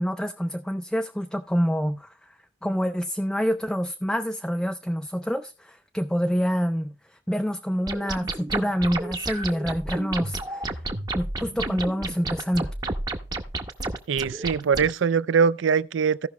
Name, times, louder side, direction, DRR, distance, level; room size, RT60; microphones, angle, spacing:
voice 1, 0.0-10.8 11.1-12.7, equal, 5° left, 0.3 m, -27 dB
sound 1, 7.9-14.9, right 2 dB, 20° right, 0.7 m, -31 dB
voice 2, 14.1-16.3, right 6 dB, 85° right, 0.4 m, -22 dB
16.0 x 5.7 x 3.0 m
head